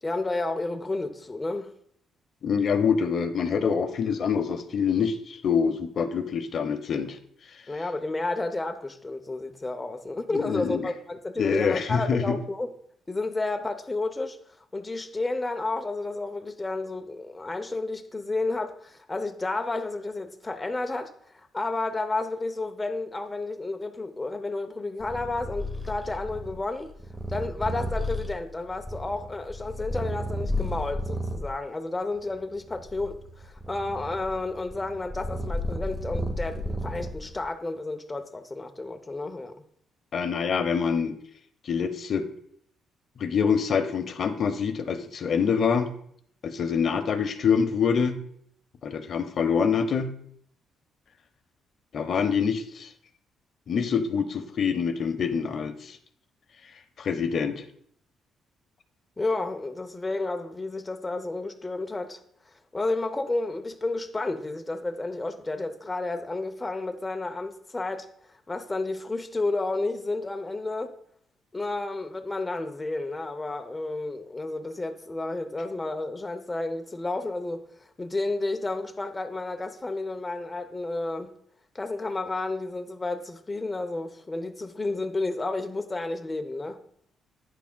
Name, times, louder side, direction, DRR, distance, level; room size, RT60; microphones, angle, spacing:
voice 1, 0.0-1.7 7.7-12.7 13.1-14.4 14.7-21.1 21.5-26.9 27.3-39.5 59.2-62.2 62.7-70.9 71.5-77.7 78.0-81.3 81.7-86.8, left 2 dB, 20° left, 0.6 m, -31 dB
voice 2, 2.4-7.2 10.3-10.9 11.4-12.4 40.1-41.2 41.6-42.3 43.2-45.9 46.4-48.2 48.8-50.2 51.9-52.9 53.7-56.0 57.0-57.6, left 6 dB, 55° left, 0.7 m, -25 dB
Purr, 25.0-31.5 32.2-37.4, equal, 5° right, 0.9 m, -33 dB
9.6 x 5.8 x 2.2 m
cardioid pair, 90°, 0 cm